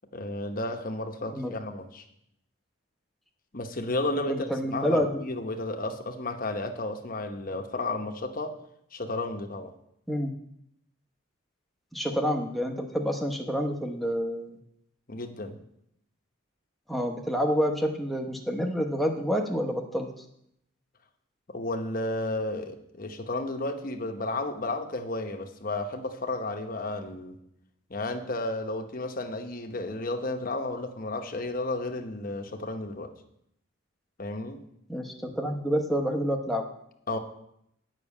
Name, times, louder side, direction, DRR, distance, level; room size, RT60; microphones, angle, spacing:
voice 1, 0.1-2.1 3.5-8.6 8.9-9.7 15.1-15.6 21.5-27.4 27.9-33.1 34.2-34.6 37.1-37.2, left 2 dB, 40° left, 5 dB, 0.9 m, -33 dB
voice 2, 4.2-5.2 10.1-10.3 11.9-14.6 16.9-20.1 34.9-36.6, equal, ahead, 2 dB, 0.9 m, -28 dB
9.0 x 6.0 x 8.4 m, 0.76 s
head